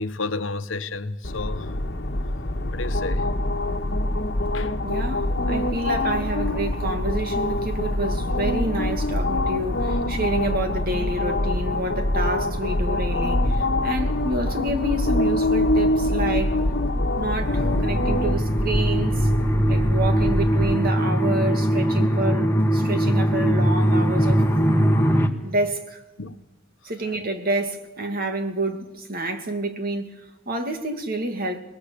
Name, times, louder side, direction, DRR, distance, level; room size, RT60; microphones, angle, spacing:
voice 1, 0.0-1.7 2.7-3.3 4.5-4.7 26.2-26.4 27.0-27.2, left 3 dB, 80° left, 1.1 m, -31 dB
sound 1, 1.2-20.8, left 1 dB, 60° left, 1.4 m, -24 dB
voice 2, 4.8-16.6 17.2-19.3 19.7-24.5 25.4-26.0 26.8-31.6, right 1 dB, 50° right, 2.3 m, -28 dB
sound 2, 17.4-25.3, equal, 10° left, 1.6 m, -21 dB
25.0 x 20.5 x 6.9 m
head